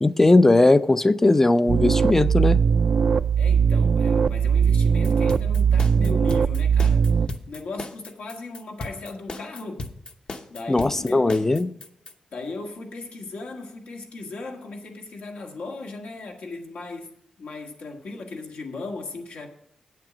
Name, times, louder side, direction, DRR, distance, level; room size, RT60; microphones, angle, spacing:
voice 1, 0.0-2.6 10.7-11.7, left 2 dB, 15° left, 0.4 m, -18 dB
sound 1, 1.7-7.3, right 6 dB, 55° right, 0.3 m, -20 dB
voice 2, 3.4-7.1 7.5-9.9 10.5-11.4 12.3-17.1 17.4-19.5, left 3 dB, 85° left, 1.7 m, -37 dB
sound 2, 5.0-12.1, left 3 dB, 45° left, 0.8 m, -36 dB
8.8 x 7.5 x 6.0 m
wide cardioid pair, 130°, 2 cm